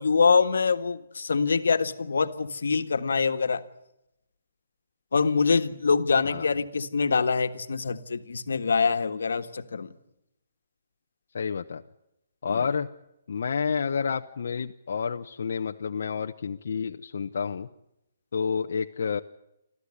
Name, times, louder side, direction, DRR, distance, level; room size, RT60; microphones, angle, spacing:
voice 1, 0.0-3.6 5.1-9.9 12.5-12.7, left 5 dB, 85° left, 8 dB, 1.5 m, -24 dB
voice 2, 11.3-11.8 12.4-12.9 13.3-17.7 18.3-19.2, left 6 dB, 60° left, 4 dB, 0.8 m, -29 dB
29.0 x 13.5 x 9.9 m, 0.84 s
hypercardioid pair, 170°, 0 cm